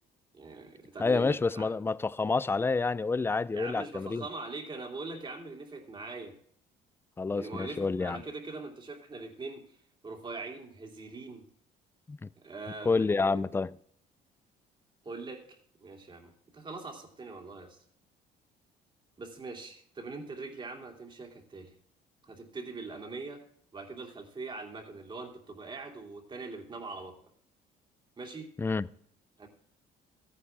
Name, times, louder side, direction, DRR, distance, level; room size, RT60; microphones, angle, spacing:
voice 1, 0.3-1.7 3.5-6.3 7.3-9.6 10.0-11.4 12.4-13.4 15.0-17.8 19.2-21.7 22.2-23.4 23.7-27.2 28.2-28.5 29.4-29.5, right 3 dB, 30° right, 2.8 m, -42 dB
voice 2, 1.0-4.3 7.2-8.2 12.1-12.3 12.8-13.7 28.6-28.9, left 4 dB, 15° left, 0.4 m, -28 dB
14.0 x 9.7 x 3.5 m
cardioid pair, 110°, 17 cm